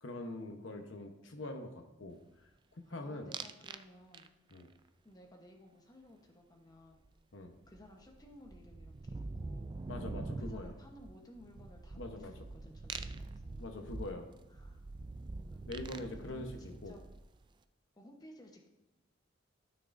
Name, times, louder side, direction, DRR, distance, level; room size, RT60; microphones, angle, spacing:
voice 1, 0.0-2.2 2.7-3.3 4.5-4.7 7.3-7.5 9.9-10.7 11.9-12.4 13.6-14.3 15.6-16.9, left 2 dB, 75° left, 5 dB, 0.9 m, -43 dB
voice 2, 2.8-4.3 5.0-7.0 7.7-9.7 10.4-13.7 14.5-14.8 15.5-15.7 15.9-17.0 17.9-18.7, left 1 dB, 20° left, 1 dB, 1.0 m, -57 dB
sound 1, 3.3-3.8 4.1-4.6 7.1-7.2 7.4-17.4, right 3 dB, 25° right, 0.3 m, -45 dB
13.0 x 6.1 x 2.6 m, 1.0 s
head